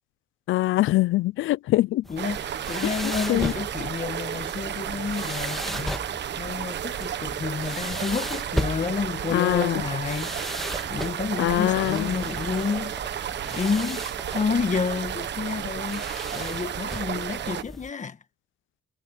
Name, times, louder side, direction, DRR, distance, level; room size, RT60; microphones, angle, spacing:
voice 1, 0.5-2.0 3.3-3.5 9.3-9.8 11.4-12.1, left 16 dB, 80° left, 0.6 m, -23 dB
sound 1, 2.0-17.9, equal, ahead, 2.0 m, -37 dB
voice 2, 2.1-6.0 6.4-10.4 10.9-16.0 16.3-18.2, left 5 dB, 40° left, 1.6 m, -30 dB
sound 2, 2.2-17.6, right 10 dB, 60° right, 1.4 m, -32 dB
cardioid pair, 90°, 20 cm